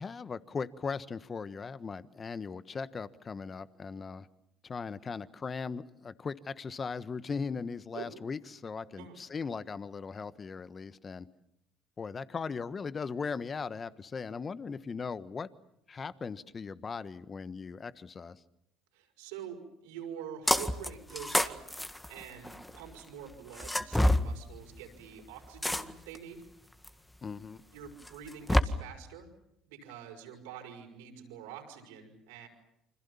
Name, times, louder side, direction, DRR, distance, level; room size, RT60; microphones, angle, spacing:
voice 1, 0.0-4.3 4.6-11.3 12.0-15.5 15.9-18.4 27.2-27.6, left 5 dB, 35° left, 1.4 m, -38 dB
voice 2, 18.9-21.6 22.1-26.4 27.7-29.3 29.7-32.5, right 8 dB, 80° right, 6.0 m, -46 dB
sound 1, 20.5-20.9 21.2-22.7 23.6-24.2 25.6-26.2 26.8-26.9 28.1-28.6, left 1 dB, 10° left, 1.8 m, -27 dB
28.0 x 26.0 x 7.1 m
hypercardioid pair, 60°, 0 cm